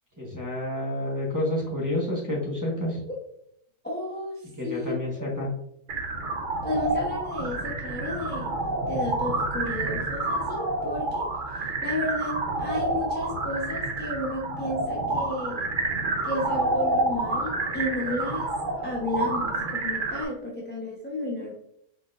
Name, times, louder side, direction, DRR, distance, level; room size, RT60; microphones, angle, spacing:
voice 1, 0.2-3.0 4.6-5.5, left 1 dB, 15° right, -4 dB, 0.9 m, -29 dB
voice 2, 3.8-5.4 6.6-8.5 8.9-15.6 16.2-18.5 18.8-21.5, left 2 dB, 10° left, -4 dB, 0.7 m, -32 dB
sound 1, 5.9-20.2, right 2 dB, 45° right, 0.7 m, -29 dB
4.8 x 4.0 x 2.5 m, 0.74 s
omnidirectional pair, 1.6 m